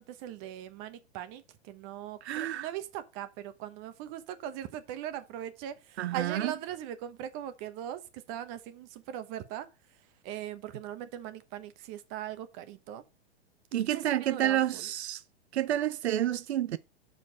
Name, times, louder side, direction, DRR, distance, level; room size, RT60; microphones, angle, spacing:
voice 1, 0.0-13.0 13.9-14.9, right 11 dB, 40° right, 1.0 m, -40 dB
voice 2, 2.2-2.7 6.0-6.5 13.7-15.2 15.5-16.8, right 12 dB, 75° right, 0.5 m, -29 dB
7.0 x 5.1 x 5.9 m
hypercardioid pair, 105°, 33 cm